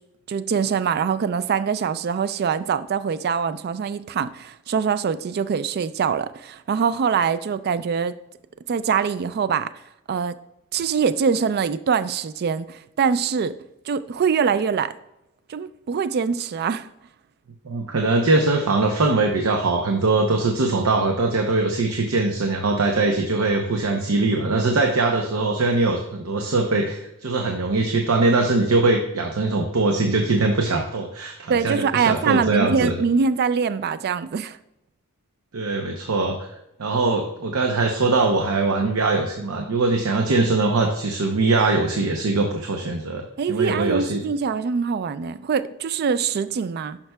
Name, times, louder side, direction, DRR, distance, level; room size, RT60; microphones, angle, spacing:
voice 1, 0.3-8.1 8.7-9.7 10.1-10.3 10.7-13.5 13.9-14.9 15.5-16.9 31.5-34.6 43.4-47.0, right 6 dB, 50° right, 14 dB, 0.3 m, -23 dB
voice 2, 17.6-33.0 35.5-36.4 36.8-44.2, right 3 dB, 90° right, 2 dB, 0.7 m, -21 dB
10.5 x 5.8 x 2.3 m, 0.88 s
head